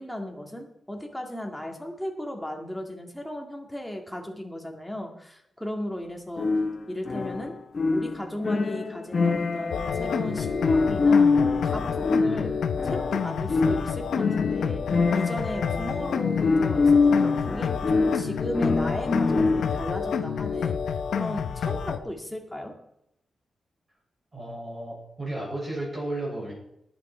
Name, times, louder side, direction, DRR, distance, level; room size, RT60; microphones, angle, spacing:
voice 1, 0.0-6.5 6.9-7.5 7.9-12.5 12.8-22.8, left 1 dB, ahead, 2 dB, 2.1 m, -36 dB
sound 1, 6.4-19.9, left 4 dB, 35° left, 0.9 m, -25 dB
sound 2, 9.7-22.0, left 7 dB, 85° left, 0.9 m, -29 dB
voice 2, 24.3-26.5, right 1 dB, 25° right, -5 dB, 6.4 m, -33 dB
19.5 x 8.3 x 4.5 m, 0.79 s
wide cardioid pair, 160°, 0 cm